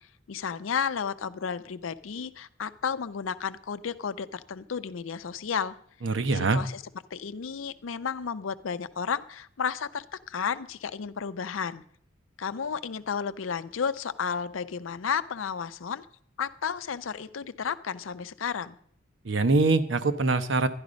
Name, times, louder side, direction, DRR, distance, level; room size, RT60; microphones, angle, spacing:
voice 1, 0.3-5.8 6.3-6.8 7.1-11.8 12.4-16.1 16.4-18.8, left 6 dB, 85° left, 13 dB, 0.5 m, -32 dB
voice 2, 6.0-6.6 19.2-20.7, right 3 dB, 65° right, 10 dB, 0.8 m, -23 dB
11.5 x 10.5 x 5.1 m, 0.63 s
head